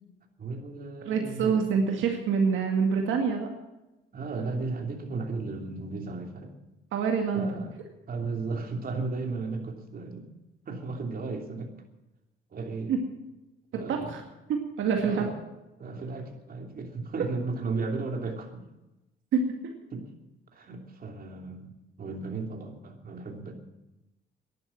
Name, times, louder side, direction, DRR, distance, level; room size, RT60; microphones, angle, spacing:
voice 1, 0.4-1.6 4.1-6.6 7.3-7.7 8.1-10.3 10.6-11.7 12.5-12.9 13.7-14.2 14.9-15.4 15.8-18.7 19.9-20.1 20.5-23.5, right 3 dB, 50° right, 3 dB, 3.0 m, -35 dB
voice 2, 1.1-3.5 6.9-7.6 12.9-13.0 13.7-14.2 14.5-15.3 19.3-19.4, right 6 dB, 80° right, 2 dB, 2.2 m, -26 dB
12.0 x 11.0 x 8.9 m, 0.99 s
cardioid pair, 90°, 20 cm